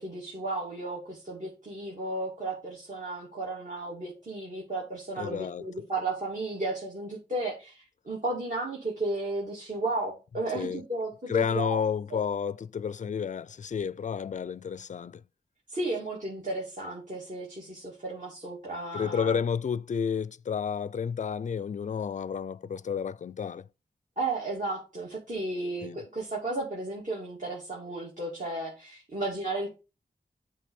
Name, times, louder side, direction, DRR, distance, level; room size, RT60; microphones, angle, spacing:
voice 1, 0.0-11.8 12.1-12.2 15.7-19.4 24.2-29.7, right 2 dB, 50° right, 2.3 m, -34 dB
voice 2, 5.2-5.6 10.5-10.8 11.3-15.2 18.9-23.7 25.8-26.0, left 7 dB, 50° left, 0.4 m, -31 dB
7.6 x 3.4 x 5.3 m
cardioid pair, 55°, 17 cm